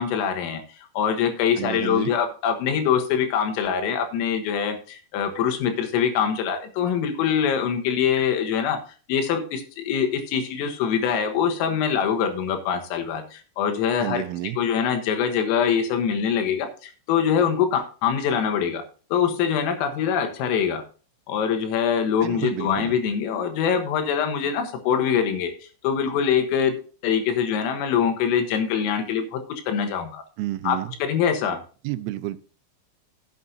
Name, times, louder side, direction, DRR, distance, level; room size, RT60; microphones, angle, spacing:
voice 1, 0.0-8.8 9.1-14.2 14.6-18.8 19.1-20.8 21.3-26.8 27.0-30.2 30.6-31.6, left 7 dB, 85° left, 6 dB, 4.0 m, -24 dB
voice 2, 1.6-2.1 14.0-14.6 22.2-23.0 30.4-30.9 31.8-32.4, right 16 dB, 90° right, 13 dB, 3.4 m, -30 dB
15.0 x 8.2 x 2.7 m, 0.37 s
omnidirectional pair, 5.8 m